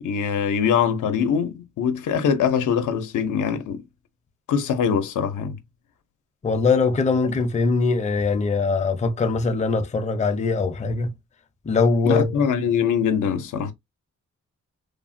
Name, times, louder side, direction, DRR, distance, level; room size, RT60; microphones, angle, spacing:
voice 1, 0.0-3.8 4.5-5.6 7.2-7.4 12.1-13.7, left 7 dB, 90° left, 0.6 m, -23 dB
voice 2, 6.4-11.1 11.7-12.3, left 4 dB, 25° left, 0.4 m, -22 dB
3.2 x 2.0 x 2.5 m
wide cardioid pair, 115°, 30 cm